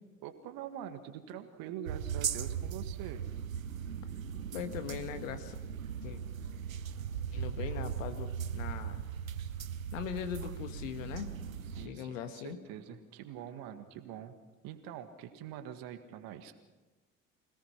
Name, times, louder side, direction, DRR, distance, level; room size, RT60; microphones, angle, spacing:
voice 1, 0.2-3.2 11.7-14.4 14.6-16.5, right 10 dB, 60° right, 8 dB, 1.8 m, -44 dB
sound 1, 1.9-11.9, right 8 dB, 85° right, 0.8 m, -38 dB
voice 2, 4.5-5.6 6.0-6.2 7.3-9.0 9.9-11.3 11.8-12.6, left 8 dB, 75° left, 9 dB, 1.5 m, -40 dB
26.0 x 18.0 x 5.9 m, 1.2 s
figure-of-eight pair, 55°, 40 cm